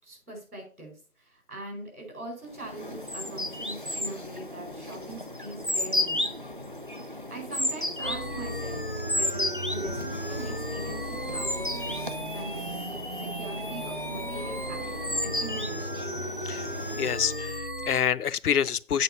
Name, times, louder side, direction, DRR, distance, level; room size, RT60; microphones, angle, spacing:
voice 1, 0.0-6.3 7.1-8.8 9.1-14.8 15.2-16.0, right 2 dB, 75° right, 4.4 m, -41 dB
sound 1, 2.5-17.5, left 1 dB, 40° right, 0.4 m, -34 dB
sound 2, 8.0-18.0, equal, 40° left, 0.4 m, -35 dB
voice 2, 17.0-19.0, left 8 dB, 90° left, 0.5 m, -27 dB
7.9 x 4.3 x 5.6 m
figure-of-eight pair, 165°, 44 cm